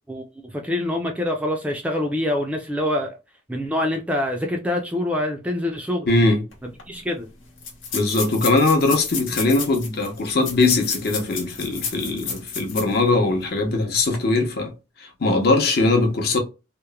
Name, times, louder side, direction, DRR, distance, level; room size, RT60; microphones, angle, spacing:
voice 1, 0.1-3.1 3.5-6.1 6.6-7.3, left 1 dB, 5° right, 0.3 m, -25 dB
voice 2, 6.1-6.4 7.9-14.7 15.0-16.4, left 2 dB, 55° left, 0.7 m, -20 dB
sound 1, 6.5-6.6 6.8-6.9 7.6-13.0 13.4-13.5 14.0-14.2, left 5 dB, 85° left, 0.9 m, -31 dB
2.9 x 2.1 x 2.2 m
head